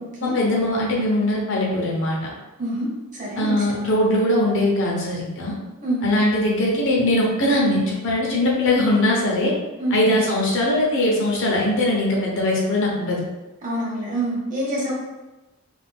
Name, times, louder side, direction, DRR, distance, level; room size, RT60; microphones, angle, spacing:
voice 1, 0.2-2.2 3.4-5.5 6.0-9.5 9.9-13.2, left 1 dB, 60° left, -3 dB, 0.7 m, -21 dB
voice 2, 2.6-3.8 5.8-6.0 9.8-10.0 13.6-14.9, right 1 dB, 35° right, -5 dB, 1.0 m, -26 dB
2.5 x 2.3 x 3.4 m, 1.1 s
head